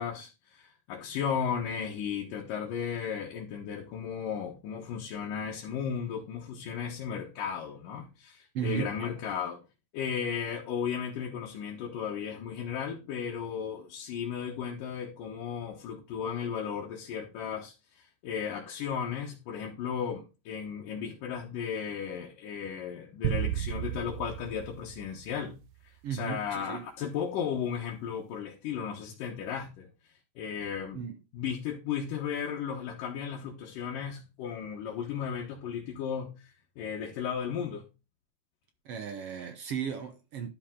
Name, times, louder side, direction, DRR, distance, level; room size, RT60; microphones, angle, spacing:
voice 1, 0.0-9.6 9.9-17.7 18.2-25.6 26.1-29.9 30.4-31.0 31.3-36.3 36.8-37.8, left 7 dB, 80° left, 2.9 m, -35 dB
voice 2, 8.5-9.1 26.0-26.9 30.9-31.1 38.8-40.5, right 8 dB, 65° right, 1.5 m, -35 dB
sound 1, 23.2-25.7, right 13 dB, 85° right, 2.3 m, -34 dB
11.5 x 5.4 x 3.7 m
omnidirectional pair, 3.8 m